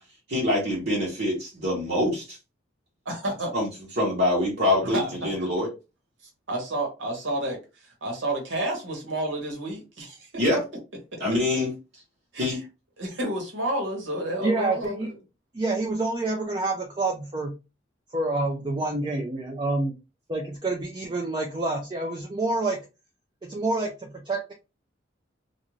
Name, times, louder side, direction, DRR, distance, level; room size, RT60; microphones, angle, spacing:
voice 1, 0.3-2.4 3.5-3.7 4.0-5.7 10.4-10.6 11.2-11.7 12.4-12.6, left 1 dB, 55° right, 1.1 m, -25 dB
voice 2, 3.0-3.5 4.9-5.1 6.5-7.6 8.0-10.3 12.3-12.5 13.0-15.1, right 1 dB, 90° right, 1.2 m, -30 dB
voice 3, 14.4-15.1 15.5-17.6 18.1-19.9 20.3-22.8 23.4-24.5, right 2 dB, 25° right, 0.4 m, -28 dB
2.5 x 2.4 x 3.0 m
head